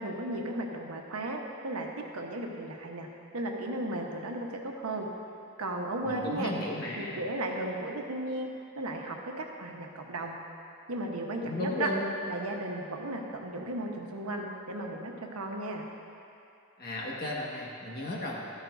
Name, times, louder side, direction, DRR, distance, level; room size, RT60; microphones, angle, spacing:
voice 1, 0.0-3.1 3.3-5.1 5.6-6.5 7.0-10.4 10.9-11.9 12.3-15.9, right 1 dB, 85° right, 1 dB, 1.1 m, -35 dB
voice 2, 6.0-7.2 11.4-12.2 16.8-18.6, left 1 dB, 45° left, -4 dB, 1.6 m, -35 dB
14.0 x 12.5 x 2.6 m, 2.6 s
head